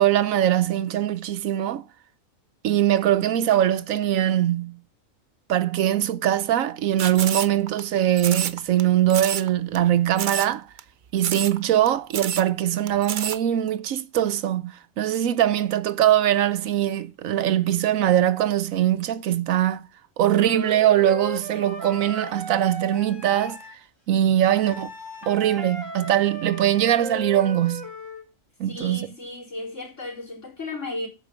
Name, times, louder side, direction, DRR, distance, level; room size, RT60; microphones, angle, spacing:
voice 1, 0.0-1.8 2.6-4.8 5.5-10.7 11.1-19.9 20.2-23.6 24.1-24.9 25.2-27.9 28.6-29.1, right 11 dB, 85° right, 1.1 m, -22 dB
sound 1, 7.0-7.8 8.2-8.8 9.1-9.5 9.7-9.8 10.2-10.5 10.8-10.9 11.2-11.6 11.9-12.0 12.1-12.5 12.9-13.4, right 8 dB, 50° right, 0.6 m, -29 dB
Wind instrument woodwind instrument, 20.2-23.7 24.5-28.3, equal, 20° right, 2.2 m, -36 dB
voice 2, 28.6-31.1, left 2 dB, 65° left, 4.7 m, -34 dB
8.6 x 5.9 x 7.4 m
omnidirectional pair, 1.4 m